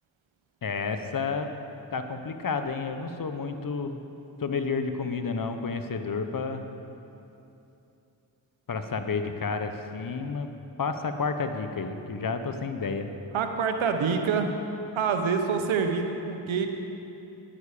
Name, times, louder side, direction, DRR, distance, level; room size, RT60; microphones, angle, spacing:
voice 1, 0.6-1.5 1.9-4.0 4.4-6.7 8.7-10.5 10.8-13.1, left 4 dB, 45° left, 8 dB, 1.0 m, -30 dB
voice 2, 13.3-14.6 14.9-16.7, right 5 dB, 85° right, 6 dB, 0.9 m, -26 dB
10.5 x 9.9 x 5.0 m, 2.8 s
cardioid pair, 45°, 47 cm